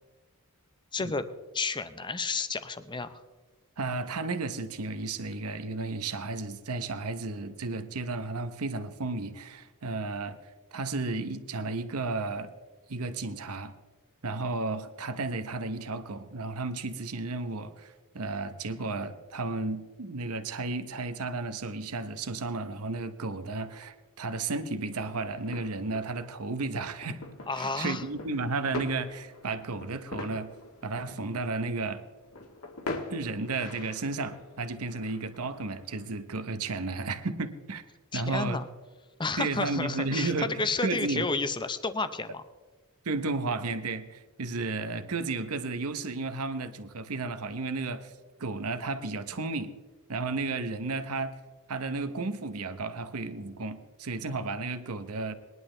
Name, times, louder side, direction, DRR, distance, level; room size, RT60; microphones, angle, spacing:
voice 1, 0.9-1.3 1.5-3.2 27.5-28.0 38.1-38.7 39.2-42.4, left 3 dB, 20° left, 11 dB, 0.7 m, -31 dB
voice 2, 3.8-10.4 10.7-12.5 12.9-13.7 14.2-27.2 27.5-30.5 30.8-32.0 33.1-37.8 38.1-38.6 39.4-41.3 43.0-48.1 48.4-49.7 50.1-51.4 51.7-55.3, right 3 dB, 75° right, 10 dB, 0.9 m, -33 dB
sound 1, 24.9-36.1, left 2 dB, 75° left, 1.6 m, -43 dB
20.5 x 11.0 x 3.3 m, 1.2 s
head